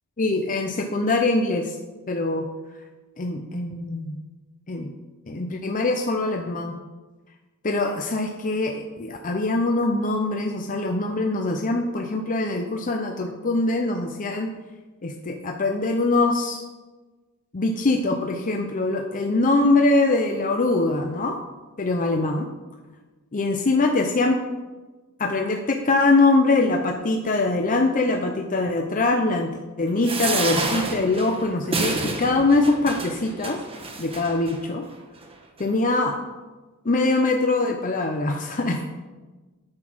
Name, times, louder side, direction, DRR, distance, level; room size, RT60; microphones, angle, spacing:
voice 1, 0.2-1.8 2.1-2.5 3.2-4.2 4.7-4.9 5.3-6.8 7.6-14.5 15.0-16.6 17.5-21.4 21.8-22.5 23.3-24.4 25.2-29.5 29.8-33.6 34.0-34.8 35.6-36.2 36.8-38.8, left 2 dB, 35° left, 3 dB, 0.7 m, -23 dB
sound 1, 30.0-34.6 35.2-35.3 35.6-35.7, right 3 dB, 25° right, 1.1 m, -29 dB
9.6 x 6.1 x 6.2 m, 1.2 s
head